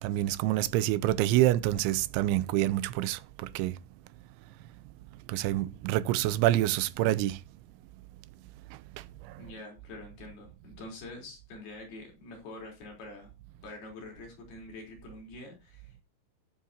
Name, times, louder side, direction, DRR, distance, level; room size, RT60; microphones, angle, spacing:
voice 1, 0.0-3.8 5.3-7.4, right 14 dB, 85° right, 3.0 m, -27 dB
voice 2, 9.4-13.3 13.6-16.0, left 2 dB, 60° left, 5.7 m, -46 dB
16.5 x 9.2 x 2.9 m
omnidirectional pair, 5.4 m